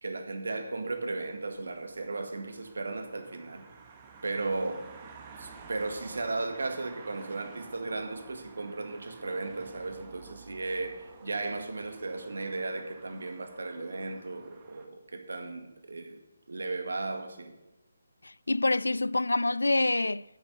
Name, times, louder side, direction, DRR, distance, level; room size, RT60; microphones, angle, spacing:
voice 1, 0.0-3.7 4.2-4.9 5.3-16.2 16.5-17.5, right 3 dB, 60° right, 1.9 m, -35 dB
sound 1, 0.9-14.9, right 5 dB, 25° right, 1.5 m, -52 dB
voice 2, 18.2-20.2, left 2 dB, 70° left, 0.3 m, -26 dB
9.6 x 9.3 x 8.1 m
figure-of-eight pair, 145°, 0 cm